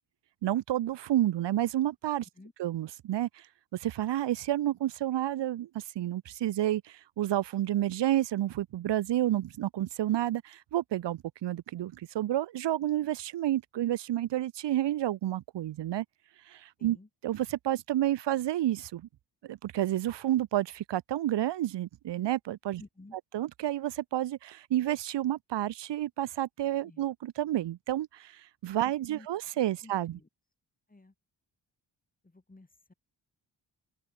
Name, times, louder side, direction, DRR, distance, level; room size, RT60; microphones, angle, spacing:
voice 1, 0.4-2.3 2.6-3.4 3.7-16.0 16.5-17.0 17.2-19.1 19.4-22.8 23.3-30.2, right 13 dB, 80° right, 0.7 m, -30 dB
voice 2, 22.8-23.2 26.8-27.0 29.1-29.3 29.8-30.3 30.9-31.1 32.2-32.9, left 2 dB, 20° left, 3.2 m, -53 dB
open air
cardioid pair, 65°, 41 cm